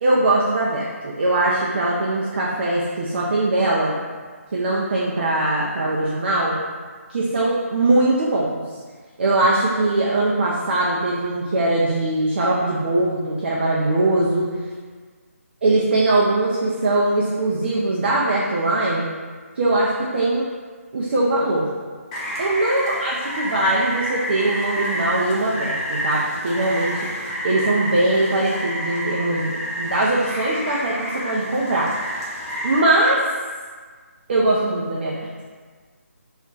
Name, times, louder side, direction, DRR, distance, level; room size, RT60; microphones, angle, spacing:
voice 1, 0.0-3.9 4.5-6.6 7.1-8.6 9.2-14.6 15.6-19.1 19.6-20.5 20.9-21.7 22.4-27.1 27.4-31.9 32.6-33.2 34.3-35.2, right 2 dB, 45° right, -5 dB, 0.4 m, -21 dB
Rain, 22.1-32.8, equal, 25° left, 0.5 m, -29 dB
2.4 x 2.1 x 3.8 m, 1.5 s
figure-of-eight pair, 150°, 8 cm